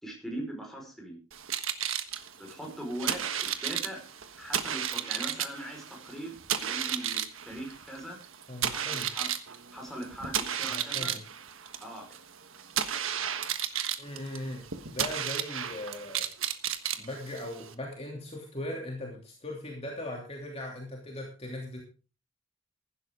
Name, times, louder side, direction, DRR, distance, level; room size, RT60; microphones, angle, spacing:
voice 1, 0.0-1.1 2.4-4.0 4.3-8.2 8.7-9.3 9.7-11.2 11.8-12.1, right 1 dB, ahead, 0 dB, 5.0 m, -40 dB
sound 1, 1.3-17.7, right 9 dB, 80° right, 1.4 m, -33 dB
voice 2, 8.5-9.1 10.7-11.2 14.0-16.3 17.0-21.8, left 1 dB, 30° left, -1 dB, 2.9 m, -39 dB
15.0 x 12.0 x 3.8 m, 0.35 s
head